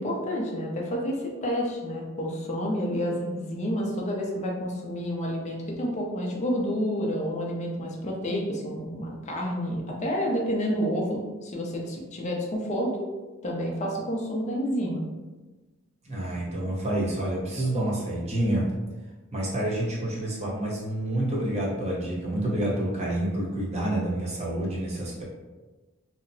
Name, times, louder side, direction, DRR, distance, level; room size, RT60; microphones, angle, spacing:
voice 1, 0.0-12.9 13.4-15.0, equal, 35° left, -1 dB, 0.5 m, -29 dB
voice 2, 16.0-18.7 19.3-25.2, right 1 dB, 30° right, -5 dB, 0.7 m, -28 dB
2.8 x 2.1 x 2.6 m, 1.2 s
head